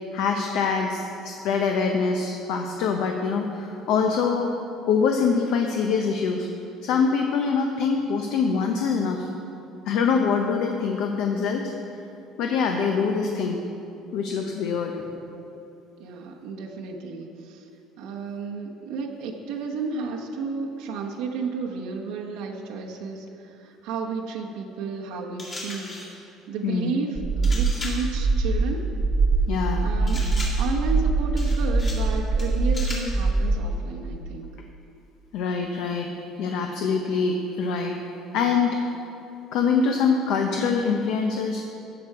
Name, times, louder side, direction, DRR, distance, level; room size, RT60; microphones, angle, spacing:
voice 1, 0.1-4.5 4.9-6.5 6.8-9.2 9.9-11.7 12.4-13.6 14.1-15.1 26.6-27.0 29.5-29.9 35.3-36.1 36.4-38.0 38.3-38.8 39.5-41.6, left 5 dB, 60° left, 3 dB, 0.8 m, -24 dB
voice 2, 16.0-17.7 18.0-28.8 29.8-30.3 30.6-34.5, right 4 dB, 85° right, -1 dB, 1.1 m, -32 dB
sound 1, 25.4-26.2 27.4-28.1 30.1-30.8 31.4-32.1 32.4-33.2, left 2 dB, 25° left, 2.1 m, -37 dB
sound 2, 27.2-33.6, right 3 dB, 20° right, 0.5 m, -23 dB
16.5 x 6.1 x 4.7 m, 2.7 s
cardioid pair, 175°, 0 cm